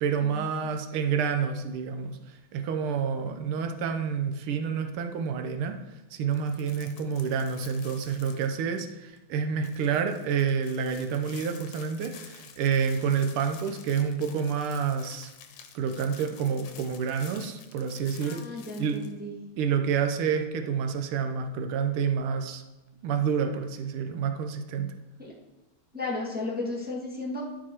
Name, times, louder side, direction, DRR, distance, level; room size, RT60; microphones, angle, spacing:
voice 1, 0.0-5.8 6.1-15.3 15.8-18.4 18.8-19.0 19.6-22.6 23.0-24.9, right 6 dB, 90° right, 6 dB, 1.7 m, -28 dB
sound 1, 6.3-8.9 9.2-9.3 9.6-19.1, left 7 dB, 90° left, 1.8 m, -50 dB
voice 2, 18.2-19.3 25.2-25.3 25.9-27.4, left 2 dB, 5° right, -4 dB, 1.6 m, -34 dB
12.5 x 4.9 x 4.4 m, 1.0 s
omnidirectional pair, 2.3 m